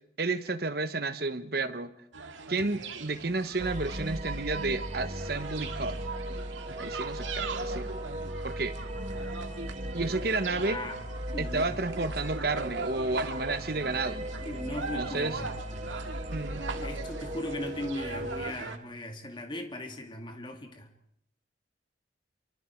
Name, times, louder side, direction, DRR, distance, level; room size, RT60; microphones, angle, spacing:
voice 1, 0.2-1.9 2.5-6.0 6.8-7.9 8.4-8.7 9.9-10.8 11.4-14.3 15.0-15.4 16.3-16.6, right 3 dB, 55° right, 10 dB, 1.2 m, -31 dB
sound 1, 2.1-18.8, right 4 dB, 90° right, 2.1 m, -40 dB
sound 2, 3.6-18.5, equal, 35° right, 1.4 m, -38 dB
voice 2, 10.6-11.0 11.3-11.7 14.4-15.5 16.7-20.9, left 1 dB, 25° left, 4 dB, 2.5 m, -38 dB
28.0 x 24.5 x 4.6 m, 0.73 s
head